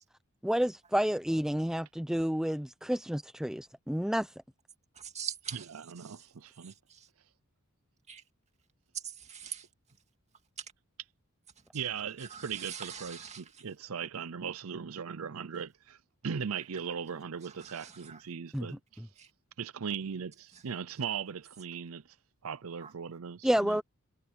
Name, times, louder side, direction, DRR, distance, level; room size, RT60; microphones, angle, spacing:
voice 1, 0.4-4.3 18.5-18.7 23.4-23.8, equal, 5° right, 0.6 m, -30 dB
voice 2, 4.9-6.3 6.6-7.1 8.1-8.2 8.9-9.7 10.6-10.7 11.6-11.8 12.2-13.7 17.4-18.2 19.2-19.3 20.5-20.6 22.8-22.9, right 8 dB, 35° right, 2.1 m, -44 dB
voice 3, 6.0-6.7 11.7-19.0 19.6-22.2 22.4-23.8, right 7 dB, 80° right, 0.6 m, -38 dB
head